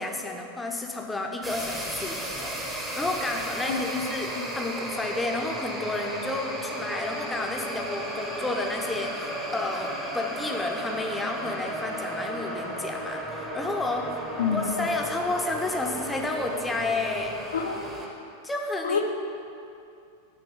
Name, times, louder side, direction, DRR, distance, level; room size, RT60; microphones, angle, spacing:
voice 1, 0.0-14.1 14.5-17.3 18.4-19.0, left 2 dB, 10° left, 2 dB, 0.6 m, -31 dB
sound 1, 1.4-18.1, right 1 dB, 15° right, 0.9 m, -34 dB
voice 2, 3.7-4.5 14.4-14.9 17.5-18.0 18.8-19.1, left 6 dB, 65° left, 5 dB, 0.4 m, -29 dB
8.5 x 3.0 x 5.1 m, 2.6 s
figure-of-eight pair, 90°, 0 cm